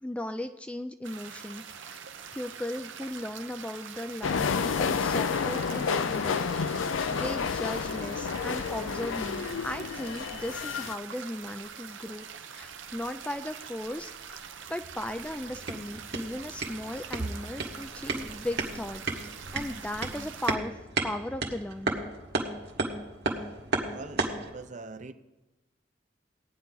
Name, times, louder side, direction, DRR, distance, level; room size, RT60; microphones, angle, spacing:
voice 1, 0.0-2.0 2.3-6.8 7.1-12.3 12.5-14.1 14.7-22.1, left 1 dB, 5° left, 8 dB, 0.3 m, -37 dB
sound 1, 1.0-20.5, right 7 dB, 75° right, 0.8 m, -44 dB
sound 2, 4.2-11.0, left 6 dB, 90° left, 0.5 m, -30 dB
sound 3, 15.4-24.5, right 3 dB, 60° right, 1.6 m, -34 dB
voice 2, 23.9-25.1, right 3 dB, 40° right, 10 dB, 0.6 m, -39 dB
17.0 x 9.7 x 3.9 m, 1.0 s
head